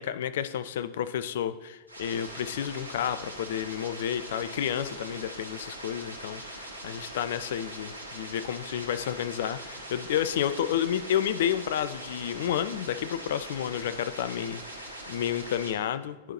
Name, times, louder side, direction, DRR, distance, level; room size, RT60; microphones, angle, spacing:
voice 1, 0.0-16.3, left 10 dB, 55° left, 13 dB, 0.4 m, -31 dB
sound 1, 1.9-15.7, right 1 dB, 85° left, 2.0 m, -42 dB
12.0 x 4.4 x 3.0 m, 1.1 s
figure-of-eight pair, 90°, 0 cm